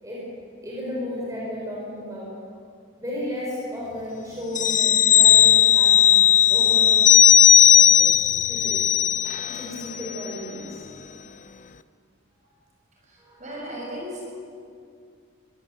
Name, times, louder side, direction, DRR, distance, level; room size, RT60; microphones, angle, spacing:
voice 1, 0.6-2.4 3.0-7.0 7.7-8.9 9.4-10.7 13.2-13.8, left 1 dB, 15° right, -5 dB, 5.5 m, -34 dB
sound 1, 4.5-9.7 10.0-10.1, left 10 dB, 40° left, 0.5 m, -16 dB
voice 2, 13.1-14.2, equal, 35° right, -2 dB, 6.1 m, -36 dB
23.0 x 17.5 x 8.0 m, 2.3 s
head